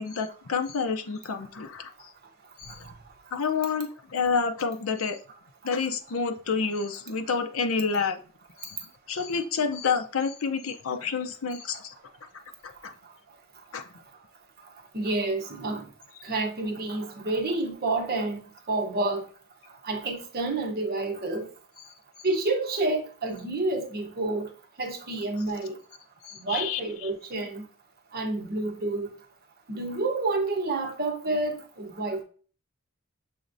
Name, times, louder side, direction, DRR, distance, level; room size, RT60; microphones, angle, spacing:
voice 1, 0.0-1.9 2.6-2.9 3.3-5.2 5.6-8.2 8.6-8.8 9.1-11.9 12.8-12.9 13.7-13.8 26.2-27.1, left 5 dB, 70° left, 0.6 m, -29 dB
voice 2, 14.9-15.9 16.2-19.3 19.8-21.5 22.2-24.5 24.8-25.8 26.4-27.6 28.1-29.1 29.7-32.2, right 2 dB, 45° right, 0.9 m, -29 dB
6.5 x 3.1 x 2.6 m
head